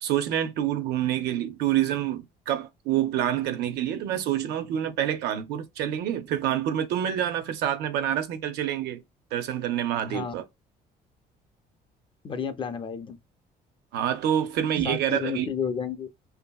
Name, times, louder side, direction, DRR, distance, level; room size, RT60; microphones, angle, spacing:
voice 1, 0.0-9.0 9.3-10.4 13.9-15.5, right 11 dB, 80° right, 0.6 m, -27 dB
voice 2, 12.2-13.2 14.8-16.1, left 7 dB, 30° left, 0.4 m, -31 dB
2.7 x 2.7 x 2.2 m
cardioid pair, 110°, 17 cm